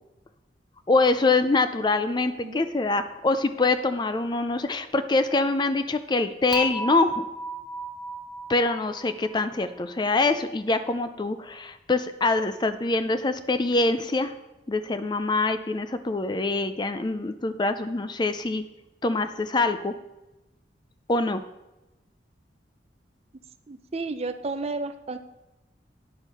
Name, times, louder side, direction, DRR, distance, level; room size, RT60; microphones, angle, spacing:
voice 1, 0.9-7.3 8.5-14.3 14.7-18.6 19.0-19.9 21.1-21.4, left 3 dB, 25° left, 10 dB, 0.4 m, -24 dB
Dishes pots and pans / Chink clink, 6.5-9.7, right 1 dB, ahead, 0.8 m, -34 dB
voice 2, 23.7-25.2, right 3 dB, 35° right, 10 dB, 0.5 m, -32 dB
9.8 x 6.4 x 5.5 m, 1.0 s
head